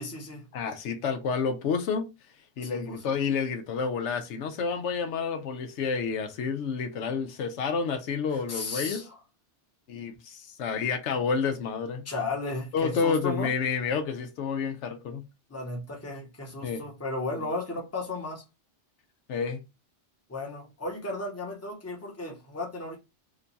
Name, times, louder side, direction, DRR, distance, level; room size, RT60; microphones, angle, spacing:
voice 1, 0.0-0.5 2.6-3.1 8.5-9.2 12.0-13.5 15.5-18.4 20.3-23.0, left 2 dB, 15° left, 0.8 m, -35 dB
voice 2, 0.5-2.0 2.6-9.0 9.9-12.1 12.7-15.3 16.6-16.8 19.3-19.6, left 5 dB, 80° left, 0.9 m, -29 dB
2.9 x 2.3 x 3.9 m
omnidirectional pair, 1.2 m